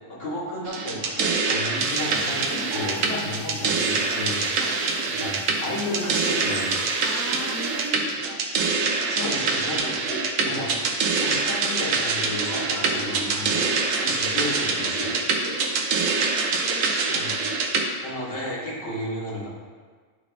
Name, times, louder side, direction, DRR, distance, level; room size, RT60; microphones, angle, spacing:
voice 1, 0.1-4.5 5.2-6.8 9.1-10.7 11.2-13.5 14.0-15.2 17.1-17.4 18.0-19.5, left 1 dB, 75° left, -9 dB, 2.6 m, -32 dB
sound 1, 0.7-17.9, right 4 dB, 90° right, 1.1 m, -25 dB
sound 2, 1.8-7.9, right 3 dB, 70° right, 1.3 m, -44 dB
voice 2, 4.5-4.9 7.0-8.5 12.4-14.2 15.4-17.3, right 1 dB, 20° right, -1 dB, 0.5 m, -39 dB
11.0 x 4.0 x 3.1 m, 1.6 s
omnidirectional pair, 1.3 m